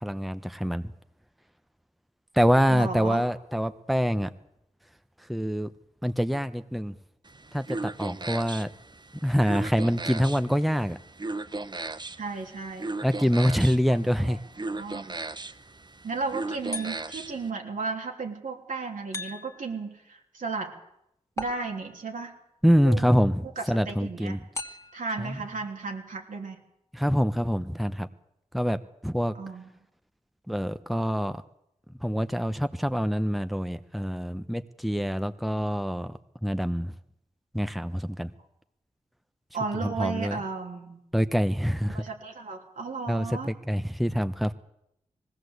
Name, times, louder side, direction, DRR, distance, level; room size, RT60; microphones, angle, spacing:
voice 1, 0.0-0.8 2.4-4.3 5.3-5.7 6.0-6.9 7.5-8.7 9.2-11.0 13.0-14.4 22.6-24.4 26.9-28.1 28.5-29.3 30.5-31.4 32.0-36.1 36.4-36.9 37.5-38.3 40.0-40.4 41.1-42.0 43.1-43.3 43.7-44.5, equal, ahead, 11 dB, 1.0 m, -25 dB
voice 2, 2.7-3.2 12.2-12.9 14.2-15.2 16.0-20.7 21.4-22.3 22.8-23.1 23.4-24.4 24.9-26.6 29.3-29.7 39.5-41.0 41.9-43.5, right 4 dB, 80° right, 1 dB, 3.1 m, -34 dB
sound 1, 7.2-17.5, right 2 dB, 35° right, 0.8 m, -37 dB
sound 2, 16.7-17.4 19.1-19.8 21.4-22.1 24.5-25.2, left 2 dB, 20° left, 2.1 m, -38 dB
20.0 x 16.5 x 8.1 m, 0.81 s
cardioid pair, 45°, 13 cm